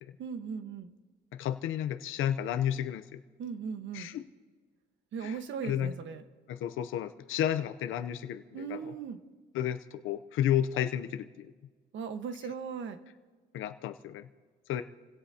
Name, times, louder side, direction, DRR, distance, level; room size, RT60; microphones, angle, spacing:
voice 1, 0.2-0.9 3.4-4.1 5.1-6.2 8.5-9.2 11.9-13.0, right 6 dB, 70° right, 8 dB, 1.4 m, -38 dB
voice 2, 1.3-3.2 3.9-4.3 5.2-5.4 5.6-5.9 6.5-8.9 9.5-11.5 13.5-14.3 14.7-14.8, left 10 dB, 85° left, 9 dB, 0.7 m, -32 dB
28.5 x 16.5 x 2.9 m, 1.4 s
cardioid pair, 90°, 20 cm